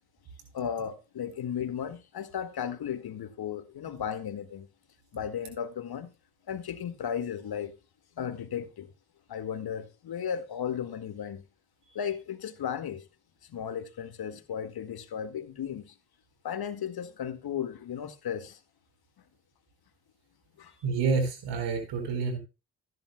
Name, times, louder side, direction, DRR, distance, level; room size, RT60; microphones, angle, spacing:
voice 1, 0.5-4.7 5.1-6.1 6.5-7.7 8.2-8.9 9.3-11.4 12.0-13.0 13.4-15.9 16.4-18.6 20.6-20.7, left 8 dB, 65° left, 1.9 m, -35 dB
voice 2, 20.8-22.4, right 4 dB, 85° right, 4.5 m, -28 dB
14.5 x 10.5 x 2.2 m
supercardioid pair, 65°, 41 cm